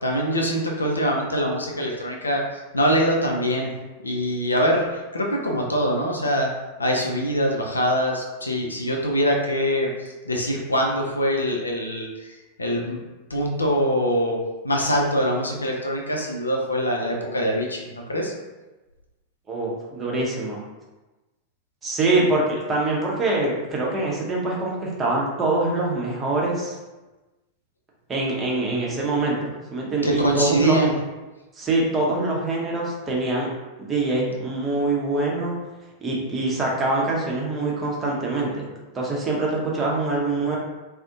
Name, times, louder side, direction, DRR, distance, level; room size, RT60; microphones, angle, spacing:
voice 1, 0.0-3.7 4.0-6.5 6.8-13.0 13.3-18.3 30.0-30.9, equal, 80° left, 0 dB, 0.4 m, -24 dB
voice 2, 19.5-20.6 21.8-22.4 22.7-26.8 28.1-30.8 31.5-33.5 33.8-35.6 36.0-38.7 38.9-40.6, right 2 dB, 20° right, -3 dB, 0.6 m, -24 dB
2.4 x 2.0 x 2.6 m, 1.1 s
figure-of-eight pair, 90°, 0 cm